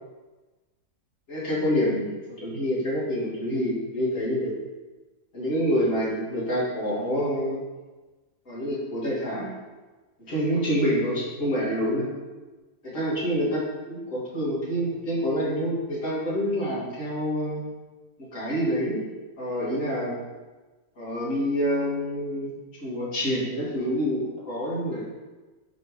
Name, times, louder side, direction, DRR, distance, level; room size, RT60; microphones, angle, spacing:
voice 1, 1.3-2.1 2.4-4.5 5.3-7.6 8.5-9.5 10.3-12.1 12.8-17.7 18.3-19.0 19.4-20.2 21.0-22.5 22.8-25.0, equal, 50° left, -9 dB, 3.5 m, -27 dB
9.7 x 5.8 x 3.4 m, 1.2 s
omnidirectional pair, 1.7 m